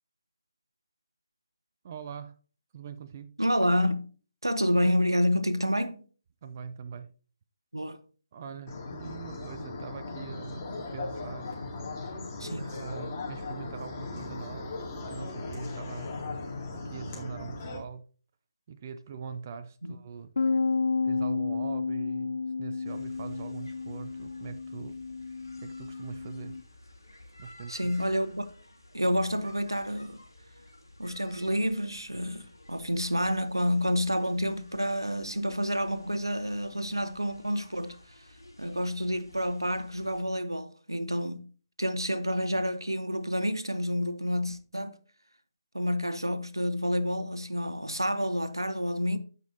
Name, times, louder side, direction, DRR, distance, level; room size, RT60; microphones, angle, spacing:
voice 1, 1.8-2.4 2.7-3.4 6.4-7.1 8.3-11.5 12.0-12.1 12.4-16.2 16.7-18.1 18.7-20.3 21.0-25.0 25.6-26.6 27.4-27.9, right 6 dB, 35° right, 0.5 m, -42 dB
voice 2, 3.4-4.1 4.4-6.0 7.7-8.0 12.4-12.7 19.8-19.9 27.7-28.5 28.9-30.2 31.0-38.0 38.6-41.4 41.8-45.0 45.7-49.2, equal, 85° right, 1.0 m, -29 dB
sound 1, 8.7-17.8, left 3 dB, 30° left, 2.6 m, -38 dB
Bass guitar, 20.4-26.6, left 4 dB, 60° left, 0.4 m, -31 dB
sound 2, 22.8-40.2, left 1 dB, 90° left, 3.1 m, -53 dB
15.0 x 5.3 x 2.8 m
figure-of-eight pair, 145°, 2 cm